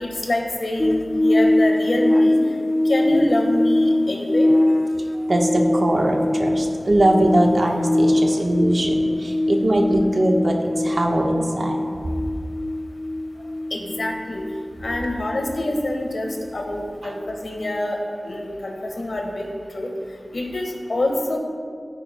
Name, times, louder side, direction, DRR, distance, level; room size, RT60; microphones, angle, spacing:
voice 1, 0.0-2.4 2.8-4.5 13.7-14.4 14.8-18.0 18.2-19.4 19.7-19.9 20.3-21.4, left 1 dB, 75° left, 1 dB, 1.5 m, -25 dB
sound 1, 0.8-17.3 17.6-17.8, left 1 dB, 25° left, 0.4 m, -22 dB
voice 2, 5.1-11.8 17.0-17.1, right 1 dB, 60° right, 1 dB, 1.2 m, -21 dB
14.0 x 9.5 x 2.3 m, 2.1 s
wide cardioid pair, 65°, 0 cm